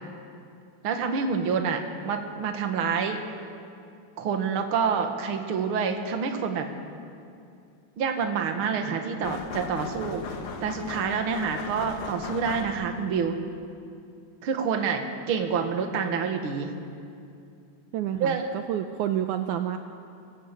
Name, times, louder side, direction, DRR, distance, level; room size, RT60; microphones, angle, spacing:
voice 1, 0.8-3.2 4.2-6.7 8.0-10.2 10.6-13.4 14.4-16.7 18.2-18.5, right 6 dB, 50° right, 5 dB, 2.0 m, -27 dB
sound 1, 9.2-13.1, left 6 dB, 75° left, 3.0 m, -38 dB
voice 2, 17.9-19.8, right 11 dB, 75° right, 7 dB, 2.0 m, -29 dB
25.0 x 16.0 x 8.4 m, 2.5 s
omnidirectional pair, 3.8 m